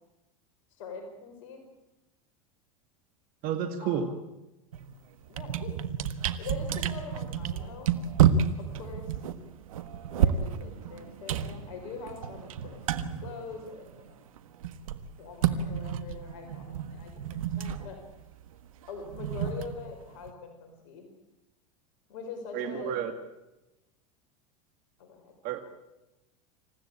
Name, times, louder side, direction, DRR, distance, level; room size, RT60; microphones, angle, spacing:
voice 1, 0.7-1.6 3.8-4.0 5.3-5.8 6.4-8.0 8.6-9.1 10.1-14.2 15.2-18.0 18.9-21.1 22.1-23.0 25.0-25.3, left 5 dB, 70° left, 4 dB, 4.9 m, -43 dB
voice 2, 3.4-4.1 22.5-23.1 25.4-25.6, right 8 dB, 55° right, 6 dB, 2.1 m, -30 dB
sound 1, 4.7-4.9 5.2-14.1 14.4-20.3, right 8 dB, 80° right, 1.5 m, -30 dB
27.0 x 15.5 x 8.7 m, 1.0 s
hypercardioid pair, 95°, 17 cm